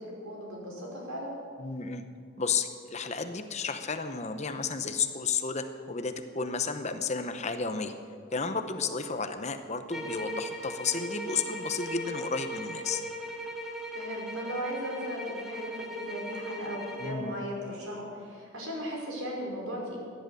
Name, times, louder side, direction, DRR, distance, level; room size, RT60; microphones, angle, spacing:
voice 1, 0.0-1.3 13.9-20.0, equal, 80° right, -2 dB, 5.0 m, -37 dB
voice 2, 1.6-2.0 2.4-7.9 8.3-13.0 17.0-17.3, left 5 dB, 30° left, 8 dB, 0.8 m, -32 dB
sound 1, 9.9-17.3, equal, ahead, 1.4 m, -38 dB
16.5 x 10.5 x 7.8 m, 2.3 s
head